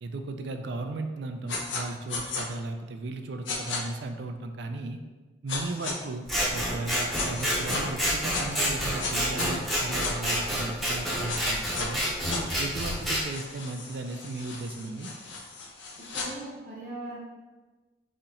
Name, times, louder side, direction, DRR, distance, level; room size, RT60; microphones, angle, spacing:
voice 1, 0.0-5.0 5.4-6.2 6.5-12.0 12.6-15.1, right 2 dB, 60° right, 6 dB, 0.4 m, -36 dB
sound 1, 1.5-1.8 2.1-2.4 3.5-3.8 5.5-5.9 7.1-7.8 8.3-10.1 11.3-11.9 12.3-16.3, left 4 dB, 75° left, 0.7 m, -36 dB
Scissors, 6.3-13.2, equal, ahead, 0.7 m, -29 dB
voice 2, 16.0-17.2, right 1 dB, 40° right, -5 dB, 0.8 m, -39 dB
4.2 x 2.9 x 3.7 m, 1.3 s
head